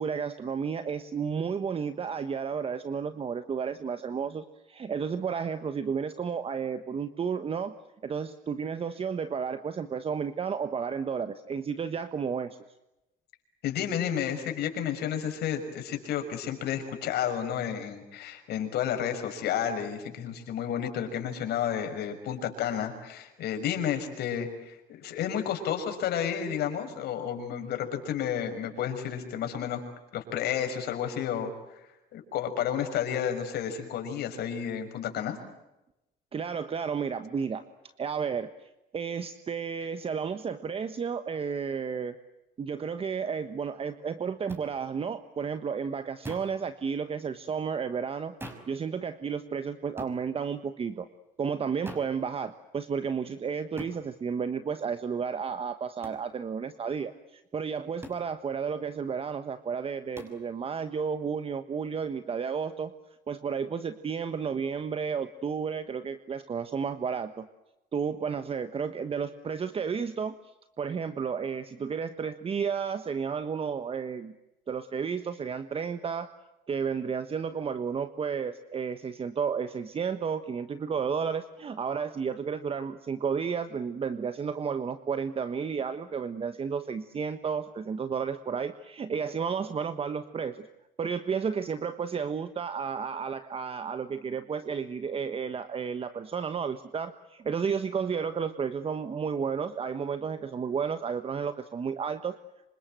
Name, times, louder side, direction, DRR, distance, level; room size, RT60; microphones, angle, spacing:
voice 1, 0.0-7.7 8.0-12.6 36.3-37.6 38.0-42.2 42.6-48.3 48.7-51.1 51.4-62.9 63.3-67.5 67.9-70.4 70.8-74.3 74.7-76.3 76.7-90.7 91.0-102.4, right 6 dB, 35° right, 11 dB, 1.3 m, -32 dB
voice 2, 13.6-29.8 30.1-31.5 32.1-35.4, left 9 dB, 75° left, 6 dB, 6.2 m, -31 dB
sound 1, 44.5-44.7 46.2-46.6 48.4-48.8 50.0-50.2 51.9-52.2 53.8-54.0 56.0-56.3 58.0-58.3 60.2-60.4, right 1 dB, 15° right, 5.7 m, -42 dB
27.0 x 25.5 x 7.7 m, 0.94 s
cardioid pair, 110°, 17 cm